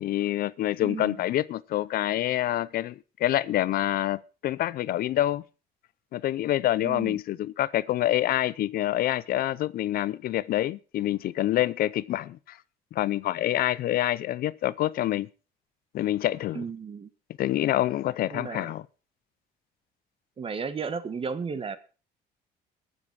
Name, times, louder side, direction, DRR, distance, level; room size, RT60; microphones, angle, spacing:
voice 1, 0.0-2.9 3.2-5.4 6.1-12.6 12.9-15.3 15.9-16.6 17.4-18.8, left 13 dB, 60° left, 0.5 m, -27 dB
voice 2, 0.8-1.2 6.8-7.2 16.5-17.1 18.3-18.7 20.4-21.8, right 5 dB, 35° right, 1.2 m, -34 dB
20.5 x 7.2 x 4.7 m
cardioid pair, 110°, 17 cm